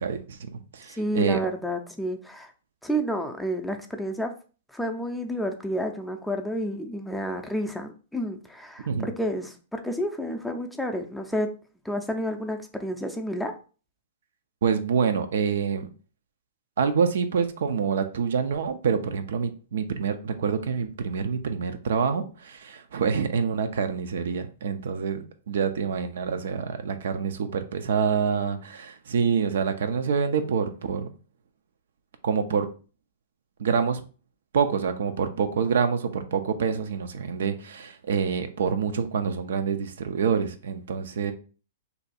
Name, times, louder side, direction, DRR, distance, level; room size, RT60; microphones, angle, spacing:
voice 1, 0.0-1.4 8.9-9.1 14.6-15.9 16.8-31.1 32.2-32.7 33.6-34.0 34.5-41.3, right 6 dB, 75° right, 0.4 m, -26 dB
voice 2, 1.0-2.5 2.8-4.3 4.7-11.5 11.8-13.5, equal, ahead, 0.4 m, -30 dB
2.6 x 2.2 x 4.1 m
hypercardioid pair, 135°, 0 cm